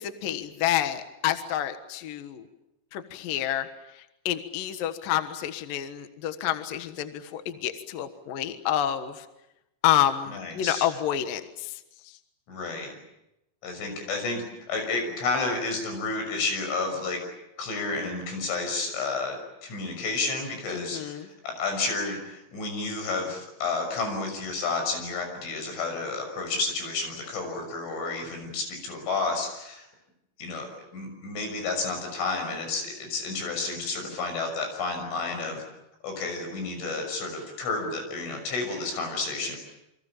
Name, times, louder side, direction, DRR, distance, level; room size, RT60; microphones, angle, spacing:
voice 1, 0.0-2.5 2.9-3.7 4.0-9.3 9.8-11.8 20.7-21.3, left 11 dB, 60° left, 9 dB, 2.6 m, -28 dB
voice 2, 10.3-10.9 12.5-12.9 13.6-17.2 17.6-29.9 30.4-30.7 30.9-35.6 36.0-39.6, left 3 dB, 90° left, 5 dB, 8.7 m, -31 dB
29.0 x 25.0 x 7.3 m, 0.88 s
omnidirectional pair, 5.4 m